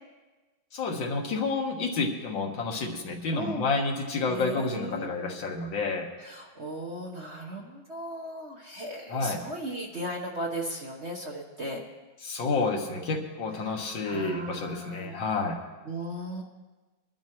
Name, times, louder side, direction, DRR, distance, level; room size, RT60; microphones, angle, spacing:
voice 1, 0.7-6.1 9.1-9.4 12.2-15.6, left 3 dB, 70° left, 2 dB, 2.1 m, -30 dB
voice 2, 3.3-3.6 4.2-5.4 6.2-11.8 13.6-15.2 15.9-16.4, right 1 dB, 40° right, -1 dB, 1.1 m, -37 dB
21.5 x 12.0 x 3.1 m, 1.2 s
omnidirectional pair, 2.2 m